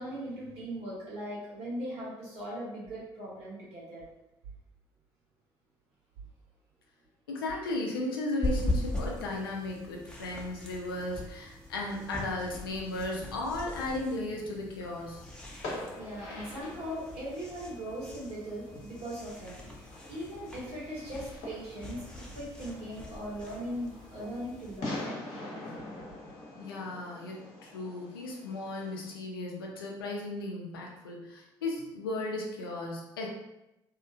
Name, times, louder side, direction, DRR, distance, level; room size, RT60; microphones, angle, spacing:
voice 1, 0.0-4.1 15.5-25.7, equal, 65° right, -7 dB, 1.4 m, -40 dB
voice 2, 7.3-15.3 26.6-33.3, left 2 dB, 90° left, -1 dB, 0.4 m, -35 dB
sound 1, 8.4-24.8, left 1 dB, 5° left, 0.7 m, -40 dB
Fireworks, 14.9-29.1, left 2 dB, 70° left, 0.9 m, -45 dB
2.8 x 2.4 x 2.4 m, 0.93 s
hypercardioid pair, 50°, 12 cm